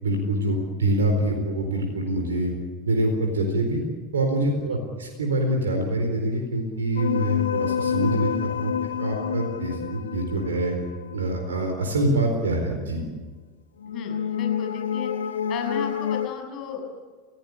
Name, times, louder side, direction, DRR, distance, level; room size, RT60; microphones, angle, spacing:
voice 1, 0.0-2.5 2.9-3.8 4.1-8.7 9.0-10.7 11.1-13.0, right 1 dB, 80° right, 3 dB, 4.3 m, -25 dB
sound 1, 7.0-11.5 13.8-16.3, left 8 dB, 80° left, 0.8 m, -28 dB
voice 2, 13.9-15.1 15.5-16.9, left 6 dB, 45° left, 3 dB, 7.1 m, -34 dB
29.0 x 17.0 x 8.5 m, 1.4 s
figure-of-eight pair, 85°, 0 cm